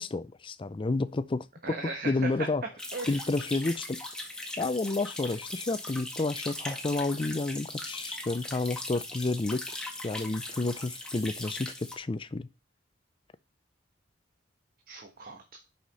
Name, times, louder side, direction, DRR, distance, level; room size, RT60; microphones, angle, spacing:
voice 1, 0.0-1.8 2.0-2.6 3.1-4.0 4.6-12.5, left 3 dB, 25° left, 0.5 m, -30 dB
voice 2, 1.6-2.5 2.9-3.2 14.9-15.6, right 3 dB, 50° right, 1.2 m, -37 dB
sound 1, 2.8-11.9, left 1 dB, 5° left, 1.6 m, -39 dB
6.0 x 5.7 x 5.5 m
head